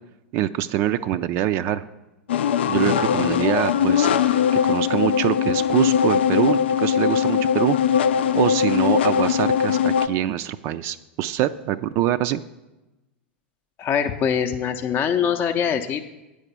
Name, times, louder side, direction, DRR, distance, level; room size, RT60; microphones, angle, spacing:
voice 1, 0.3-1.8 2.7-7.8 8.3-12.4, right 12 dB, 50° right, 11 dB, 0.3 m, -24 dB
sound 1, 2.3-10.1, left 8 dB, 80° left, 0.4 m, -20 dB
voice 2, 13.8-16.0, left 8 dB, 35° left, 5 dB, 0.5 m, -23 dB
8.5 x 4.9 x 6.8 m, 1.0 s
hypercardioid pair, 105°, 6 cm